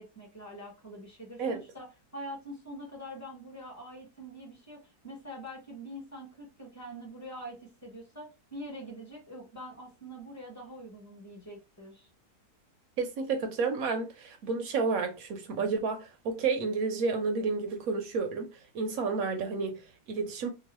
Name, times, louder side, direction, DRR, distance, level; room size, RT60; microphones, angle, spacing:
voice 1, 0.0-12.1, equal, 15° left, 0.9 m, -44 dB
voice 2, 13.0-20.5, right 4 dB, 70° right, 1.0 m, -31 dB
3.0 x 2.2 x 3.0 m
omnidirectional pair, 1.7 m